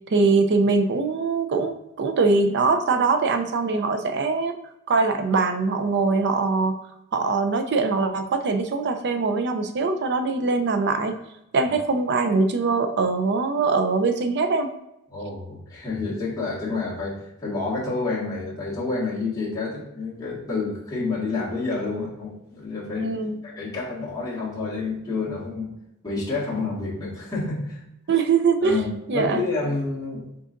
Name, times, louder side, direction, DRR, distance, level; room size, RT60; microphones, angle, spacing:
voice 1, 0.1-4.5 4.9-6.8 7.1-11.2 11.5-14.7 23.0-23.4 28.1-28.8 29.1-29.4, right 4 dB, 50° right, 7 dB, 0.5 m, -22 dB
voice 2, 15.1-23.1 23.4-25.7 26.0-27.8 28.6-30.2, left 3 dB, 20° left, -9 dB, 1.6 m, -29 dB
5.1 x 3.9 x 2.5 m, 0.83 s
head